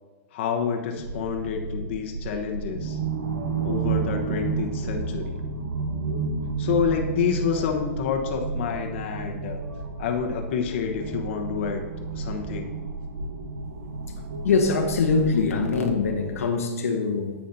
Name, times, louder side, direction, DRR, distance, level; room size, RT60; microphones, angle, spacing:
voice 1, 0.3-3.0 3.6-5.4 6.6-9.6 10.0-11.8 12.1-12.7, left 7 dB, 55° left, 2 dB, 1.1 m, -28 dB
sound 1, 1.0-16.4, right 4 dB, 85° right, 1.1 m, -31 dB
voice 2, 14.4-17.3, left 4 dB, 90° left, 3 dB, 1.1 m, -23 dB
10.5 x 8.3 x 2.8 m, 1.3 s
hypercardioid pair, 145°, 8 cm